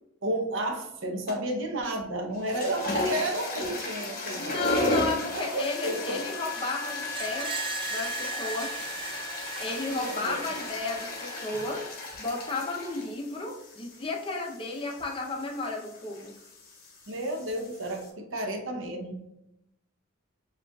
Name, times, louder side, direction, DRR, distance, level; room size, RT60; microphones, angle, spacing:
voice 1, 0.2-4.7 5.3-6.2 9.9-10.5 17.1-19.2, right 1 dB, 65° right, 3 dB, 0.7 m, -32 dB
sound 1, 1.3-1.6 2.3-18.1, left 1 dB, 45° left, 1.1 m, -36 dB
voice 2, 4.4-7.5 7.9-8.7 9.6-11.8 12.2-16.3, left 3 dB, 25° left, 0 dB, 0.6 m, -33 dB
Wind instrument woodwind instrument, 5.1-12.6, left 3 dB, 85° left, 0.4 m, -42 dB
Screech, 7.1-12.1, right 5 dB, 25° right, 0.3 m, -39 dB
7.0 x 2.4 x 2.3 m, 0.86 s
head